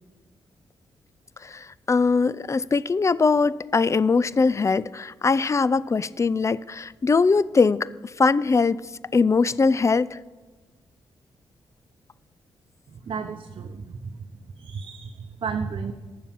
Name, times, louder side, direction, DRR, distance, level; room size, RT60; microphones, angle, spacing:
voice 1, 1.4-7.9 8.2-8.8 9.1-10.2, left 4 dB, 30° left, 0.4 m, -21 dB
voice 2, 12.9-14.3 14.5-15.9, right 5 dB, 55° right, 0.7 m, -33 dB
10.0 x 7.1 x 7.0 m
supercardioid pair, 45°, 10 cm